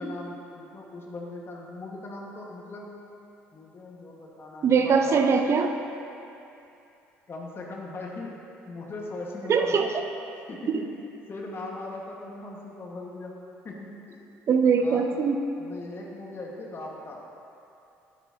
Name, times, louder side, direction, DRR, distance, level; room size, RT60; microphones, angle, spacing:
voice 1, 0.0-2.9 3.5-5.4 7.3-8.3 8.6-9.9 10.5-10.9 11.3-13.3 13.6-14.2 14.8-15.0 15.6-17.2, left 2 dB, 40° left, -2 dB, 1.6 m, -39 dB
voice 2, 4.6-5.7 9.5-10.0 10.7-10.8 14.5-15.4, right 5 dB, 50° right, 5 dB, 0.7 m, -22 dB
10.0 x 9.8 x 2.9 m, 2.7 s
hypercardioid pair, 60°, 6 cm